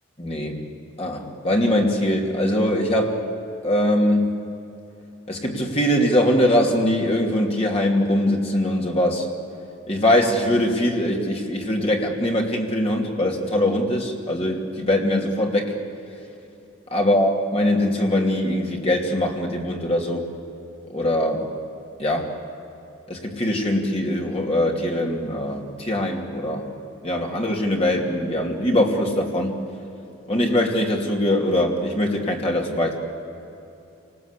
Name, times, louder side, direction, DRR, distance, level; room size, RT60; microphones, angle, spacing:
voice 1, 0.2-0.6 1.0-3.2 3.6-4.4 5.3-9.3 9.9-15.7 16.9-20.3 20.9-21.5 22.0-22.3 23.1-26.7 27.0-29.5 30.3-33.0, left 1 dB, 30° left, 0 dB, 2.8 m, -22 dB
27.5 x 20.0 x 8.4 m, 2.9 s
head